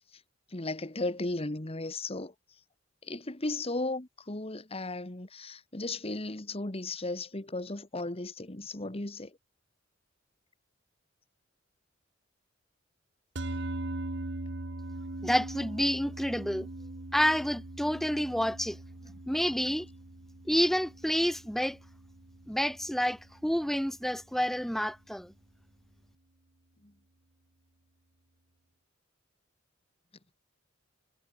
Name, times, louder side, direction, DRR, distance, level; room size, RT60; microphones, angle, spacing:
voice 1, 0.5-2.3 3.0-9.4 26.8-26.9, left 2 dB, 30° left, 1.7 m, -35 dB
sound 1, 13.4-23.8, right 2 dB, 60° right, 1.5 m, -41 dB
voice 2, 15.2-16.7 17.1-18.8 19.3-19.9 20.5-21.8 22.5-25.3, equal, ahead, 0.7 m, -29 dB
head